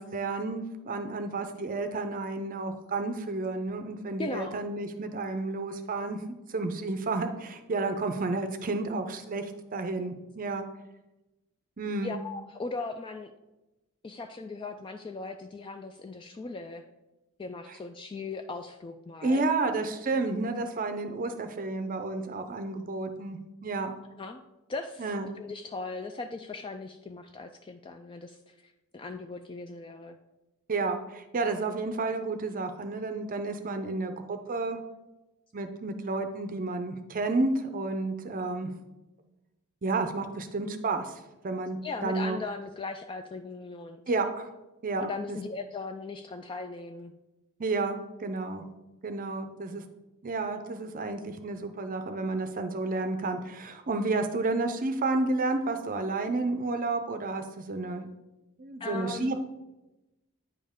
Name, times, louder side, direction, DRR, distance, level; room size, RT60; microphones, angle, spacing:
voice 1, 0.0-6.2 6.5-10.7 11.8-12.1 19.2-23.9 25.0-25.3 30.7-34.8 35.5-38.7 39.8-42.4 44.1-44.5 44.8-45.4 47.6-48.6 49.0-49.8 50.2-58.1 58.6-59.4, right 3 dB, 40° right, 7 dB, 0.5 m, -31 dB
voice 2, 4.2-4.6 12.0-13.3 14.0-16.8 17.4-19.5 24.2-24.4 24.7-30.2 41.8-44.0 45.0-47.1 58.8-59.4, left 3 dB, 25° left, 7 dB, 0.3 m, -38 dB
9.1 x 5.3 x 3.6 m, 1.0 s
head